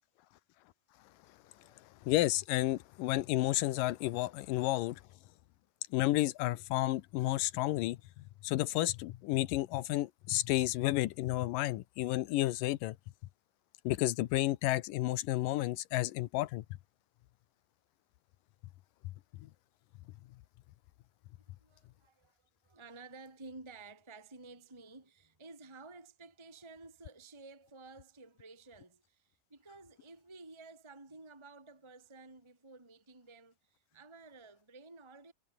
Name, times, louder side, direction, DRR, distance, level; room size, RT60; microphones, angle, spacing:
voice 1, 1.4-1.9 21.6-22.4 22.6-35.3, right 3 dB, 10° right, 2.1 m, -53 dB
voice 2, 2.0-5.0 5.9-8.0 8.4-13.0 13.8-16.6, left 16 dB, 80° left, 2.4 m, -31 dB
omnidirectional pair, 4.0 m